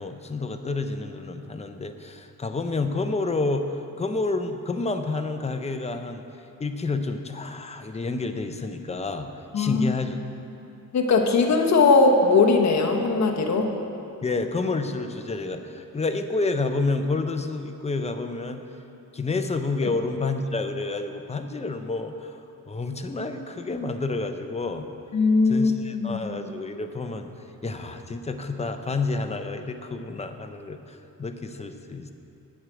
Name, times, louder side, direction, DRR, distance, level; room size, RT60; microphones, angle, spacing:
voice 1, 0.0-6.2 6.6-9.3 9.6-10.2 14.2-18.6 19.1-22.4 22.7-24.9 25.5-27.3 27.6-32.1, left 3 dB, 20° left, 7 dB, 0.4 m, -29 dB
voice 2, 9.5-9.9 10.9-13.7 25.1-26.2, left 4 dB, 50° left, 2 dB, 0.9 m, -20 dB
7.9 x 6.2 x 7.7 m, 2.7 s
wide cardioid pair, 155°, 35 cm